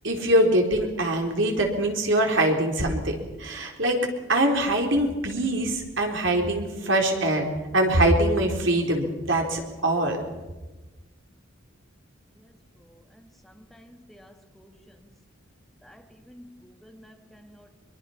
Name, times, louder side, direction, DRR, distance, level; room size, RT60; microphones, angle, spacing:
voice 1, 0.0-4.0 4.3-7.5 7.7-10.2, right 1 dB, 65° right, 3.9 m, -23 dB
voice 2, 13.4-14.7 15.8-16.0 16.3-17.7, equal, ahead, 1.6 m, -51 dB
23.0 x 23.0 x 5.8 m
head